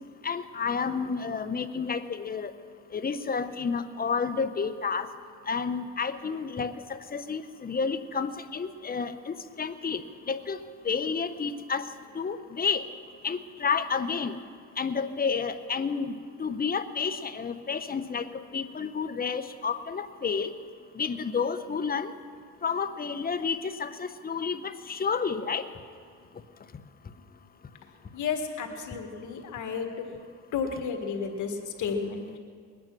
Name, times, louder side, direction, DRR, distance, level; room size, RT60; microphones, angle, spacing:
voice 1, 0.2-2.5 2.9-5.1 5.5-10.0 10.3-10.6 10.8-11.9 12.1-12.8 13.2-14.3 14.8-20.5 21.0-22.1 22.6-25.7, left 5 dB, 30° left, 10 dB, 0.9 m, -30 dB
voice 2, 28.1-30.1 30.5-32.4, left 5 dB, 75° left, 4 dB, 1.8 m, -32 dB
20.5 x 9.5 x 6.1 m, 2.1 s
cardioid pair, 90°, 30 cm